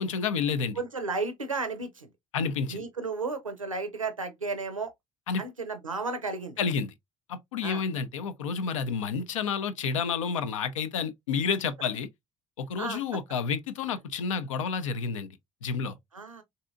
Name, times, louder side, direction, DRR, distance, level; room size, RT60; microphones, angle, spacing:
voice 1, 0.0-0.8 2.3-2.8 5.3-5.4 6.6-6.9 7.3-12.1 12.6-16.0, left 5 dB, 75° left, 0.5 m, -30 dB
voice 2, 0.8-2.1 2.7-4.9 5.4-6.6 7.6-7.8 12.8-13.0 16.1-16.4, right 3 dB, 90° right, 0.5 m, -33 dB
4.0 x 2.6 x 2.4 m
figure-of-eight pair, 55°, 17 cm